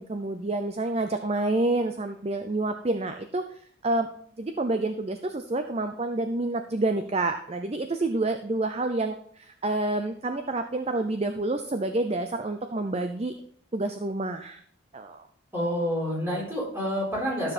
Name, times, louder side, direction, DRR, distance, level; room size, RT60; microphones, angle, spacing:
voice 1, 0.0-4.1 4.4-13.3 13.7-14.6 14.9-15.3, right 2 dB, 30° right, 7 dB, 0.5 m, -28 dB
voice 2, 15.5-17.5, equal, 10° right, -5 dB, 4.4 m, -28 dB
12.5 x 6.9 x 4.2 m, 0.62 s
head